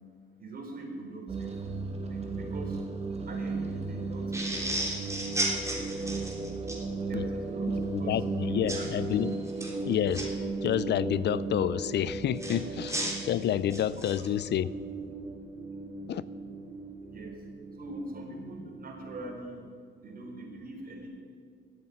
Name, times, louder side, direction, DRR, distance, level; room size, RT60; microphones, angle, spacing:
voice 1, 0.4-1.6 2.1-2.8 3.2-4.9 7.1-9.1 17.1-17.4 17.8-19.7 20.0-21.1, right 2 dB, 50° right, 1 dB, 4.1 m, -42 dB
sound 1, 1.3-19.4, right 3 dB, 30° right, 2.3 m, -36 dB
sound 2, 4.3-6.8 8.7-8.9 9.5-10.2 12.4-14.3, right 1 dB, 15° right, 3.6 m, -33 dB
voice 2, 7.9-9.3 9.8-10.3 10.6-14.7 16.1-16.2, left 10 dB, 60° left, 18 dB, 0.5 m, -29 dB
14.0 x 7.9 x 9.6 m, 2.1 s
cardioid pair, 90°, 20 cm